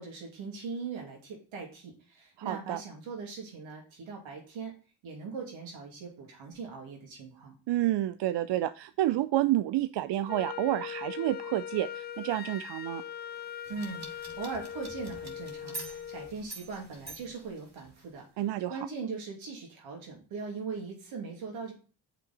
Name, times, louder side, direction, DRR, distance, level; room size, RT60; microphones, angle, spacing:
voice 1, 0.0-4.7 5.0-7.5 13.7-18.3 18.7-21.7, right 4 dB, 80° right, 0 dB, 2.5 m, -40 dB
voice 2, 2.4-2.8 7.7-13.0 18.4-18.8, right 14 dB, 65° right, 12 dB, 0.5 m, -29 dB
Wind instrument woodwind instrument, 10.3-16.4, left 9 dB, 25° left, 0.3 m, -40 dB
sound 1, 13.6-18.2, right 2 dB, 35° right, 2.4 m, -46 dB
7.1 x 5.6 x 4.2 m, 0.37 s
supercardioid pair, 40°, 46 cm